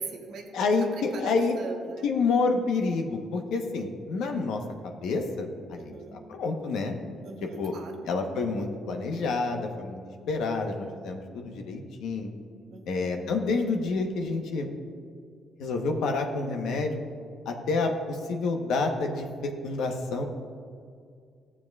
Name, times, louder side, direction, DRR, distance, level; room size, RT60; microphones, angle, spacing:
voice 1, 0.0-2.1 5.7-6.2 7.2-8.0 12.7-13.3, right 4 dB, 75° right, 1 dB, 1.2 m, -41 dB
voice 2, 0.5-1.6 2.0-6.9 7.6-7.7 8.1-10.0 10.3-12.3 12.8-14.7 15.6-17.0 17.5-20.2, left 3 dB, 85° left, 3 dB, 1.0 m, -28 dB
14.5 x 7.2 x 2.4 m, 2.2 s
cardioid pair, 90°, 0 cm